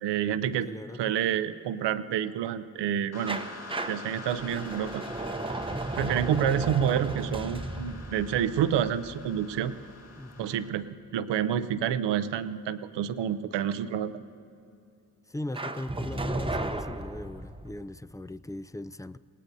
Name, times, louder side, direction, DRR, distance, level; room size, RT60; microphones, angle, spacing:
voice 1, 0.0-0.7 1.0-3.4 3.9-5.0 6.0-9.7 10.4-10.9 11.1-14.1, right 9 dB, 85° right, 0.6 m, -28 dB
voice 2, 0.6-1.1 10.2-10.6 15.3-19.2, left 1 dB, 10° left, 0.4 m, -39 dB
sound 1, 3.1-10.7, left 3 dB, 40° left, 1.7 m, -46 dB
sound 2, 3.3-10.0 15.5-17.8, right 2 dB, 15° right, 0.7 m, -35 dB
27.0 x 18.5 x 2.7 m
supercardioid pair, 50°, 41 cm